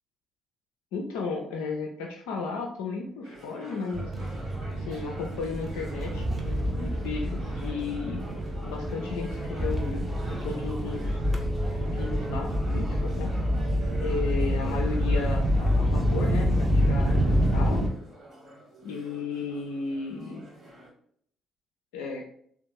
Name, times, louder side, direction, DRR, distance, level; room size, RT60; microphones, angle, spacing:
voice 1, 0.9-4.1 4.7-8.2 8.6-11.2 11.8-13.4 14.0-17.8 18.8-20.5 21.9-22.2, left 4 dB, 70° left, 1 dB, 0.4 m, -34 dB
sound 1, 3.2-20.9, right 1 dB, 45° right, 1.3 m, -46 dB
sound 2, 3.9-17.9, equal, 20° right, 0.7 m, -27 dB
3.4 x 2.3 x 2.9 m, 0.63 s
figure-of-eight pair, 45°, 0 cm